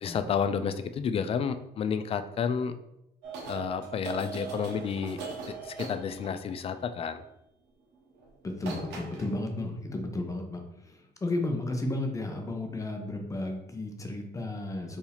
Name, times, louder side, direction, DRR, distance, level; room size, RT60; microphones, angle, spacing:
voice 1, 0.0-2.7 3.5-5.2 5.5-7.2, left 7 dB, 35° left, 11 dB, 0.4 m, -31 dB
sound 1, 3.2-6.6 8.2-8.3 8.6-9.3, right 4 dB, 80° right, 1.2 m, -40 dB
voice 2, 8.4-15.0, left 2 dB, 20° left, 4 dB, 0.8 m, -33 dB
4.6 x 2.8 x 3.4 m, 0.85 s
cardioid pair, 110°, 17 cm